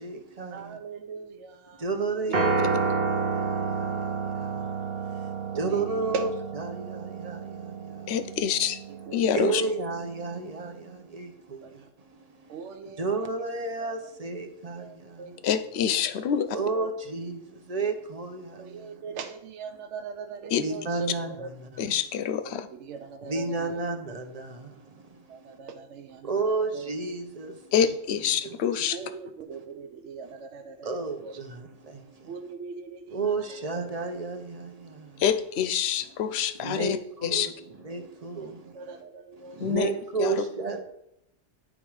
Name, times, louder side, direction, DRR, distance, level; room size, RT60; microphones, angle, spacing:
voice 1, 0.0-0.8 1.8-8.2 9.0-15.5 16.5-19.2 19.7-19.8 20.5-22.0 23.0-25.6 26.2-28.8 29.5-29.7 30.2-30.4 30.8-32.5 33.1-35.2 36.0-36.3 36.5-39.0 39.3-40.8, right 3 dB, 35° right, 0.8 m, -33 dB
voice 2, 0.5-1.8 2.3-2.4 5.5-5.8 6.1-6.3 8.9-9.4 11.6-11.7 12.5-13.3 13.8-13.9 14.8-15.4 16.2-16.9 18.6-21.1 21.4-21.5 22.4-23.7 25.3-26.3 28.9-30.9 31.2-31.3 32.3-33.2 38.4-39.6, right 5 dB, 75° right, 0.9 m, -40 dB
Piano, 2.3-10.6, right 5 dB, 55° right, 1.1 m, -31 dB
voice 3, 8.1-8.8 9.1-9.6 15.4-16.6 20.5-20.6 21.8-22.7 27.7-29.0 35.2-37.0 37.2-37.5 39.6-39.9 40.2-40.3, left 8 dB, 65° left, 0.8 m, -26 dB
10.0 x 3.5 x 4.8 m
omnidirectional pair, 1.2 m